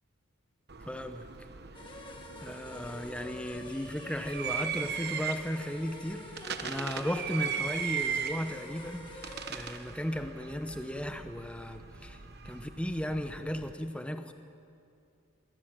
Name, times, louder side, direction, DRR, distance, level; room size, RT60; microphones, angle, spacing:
sound 1, 0.7-13.7, right 7 dB, 50° right, 1.1 m, -39 dB
voice 1, 0.8-1.3 1.8-2.1 2.4-14.3, equal, 5° left, 7 dB, 1.0 m, -36 dB
sound 2, 1.7-10.0, left 1 dB, 25° left, 1.9 m, -47 dB
23.0 x 18.0 x 9.0 m, 2.5 s
head